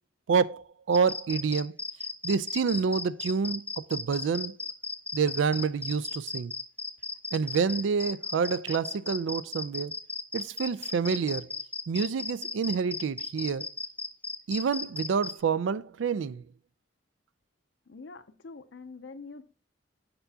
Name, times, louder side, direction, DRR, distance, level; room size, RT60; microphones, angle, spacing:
voice 1, 0.3-1.7 2.2-4.5 5.1-6.5 7.3-9.9 10.3-11.5 11.9-13.7 14.5-16.4, right 5 dB, 90° right, 0.4 m, -28 dB
sound 1, 0.9-15.3, left 3 dB, 10° left, 0.4 m, -36 dB
voice 2, 17.9-19.4, left 4 dB, 70° left, 0.5 m, -45 dB
6.8 x 5.6 x 2.7 m
head